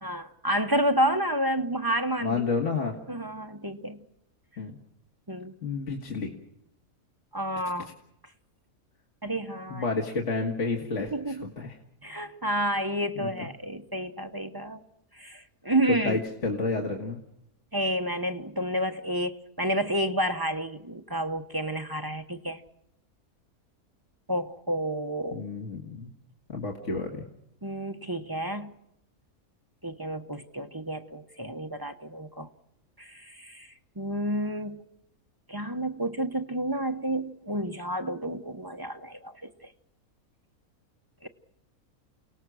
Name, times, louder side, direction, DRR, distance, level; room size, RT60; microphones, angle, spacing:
voice 1, 0.0-2.6 3.1-4.0 5.3-5.5 7.3-7.9 9.2-9.9 11.1-11.5 12.0-14.8 15.1-16.2 17.7-22.6 24.3-25.4 27.6-28.7 29.8-32.5 33.0-33.7 34.0-34.8 35.5-39.7 41.2-41.3, right 1 dB, 20° right, 0.9 m, -30 dB
voice 2, 2.2-3.0 4.6-4.7 5.6-6.4 9.7-11.8 13.2-13.5 15.9-17.2 25.3-26.1 26.5-27.2, left 4 dB, 55° left, 2.3 m, -30 dB
29.5 x 18.0 x 6.3 m
omnidirectional pair, 1.5 m